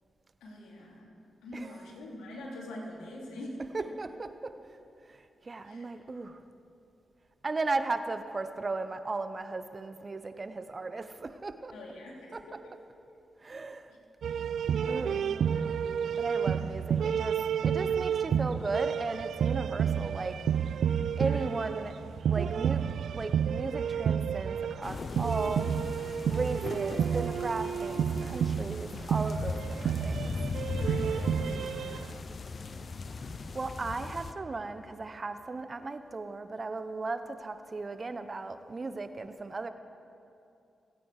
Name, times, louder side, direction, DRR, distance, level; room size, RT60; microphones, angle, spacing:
voice 1, 0.4-1.1 1.4-3.6 5.6-6.0 11.7-12.7 13.9-14.0 14.7-15.7 21.1-21.6 30.7-32.2, left 1 dB, 85° left, -2 dB, 3.0 m, -45 dB
voice 2, 3.7-4.6 5.1-5.2 5.4-6.4 7.4-11.7 12.3-12.4 13.4-13.9 14.9-15.2 16.2-20.4 21.2-21.9 22.3-22.8 23.1-25.7 26.3-30.3 33.5-39.7, right 3 dB, 45° right, 10 dB, 1.0 m, -36 dB
sound 1, 14.2-32.1, right 8 dB, 75° right, 0.4 m, -30 dB
sound 2, 24.8-34.3, left 3 dB, 55° left, 0.8 m, -38 dB
27.0 x 9.2 x 4.9 m, 2.6 s
supercardioid pair, 40°, 0 cm